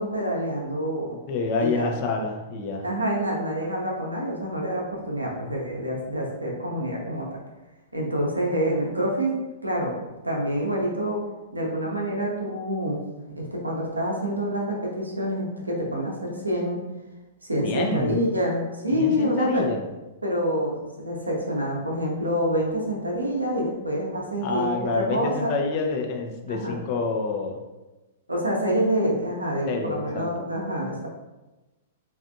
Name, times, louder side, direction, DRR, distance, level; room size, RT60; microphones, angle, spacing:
voice 1, 0.0-1.2 1.6-1.9 2.8-7.3 7.9-9.9 10.2-11.2 11.5-13.0 13.4-16.8 17.4-19.7 20.2-25.5 26.5-26.8 28.3-31.1, equal, 85° right, -2 dB, 0.7 m, -27 dB
voice 2, 1.3-2.9 17.6-18.2 18.9-19.9 24.4-27.6 29.7-30.5, left 3 dB, 40° left, 2 dB, 0.5 m, -27 dB
3.3 x 2.6 x 2.5 m, 1.1 s
figure-of-eight pair, 105°, 0 cm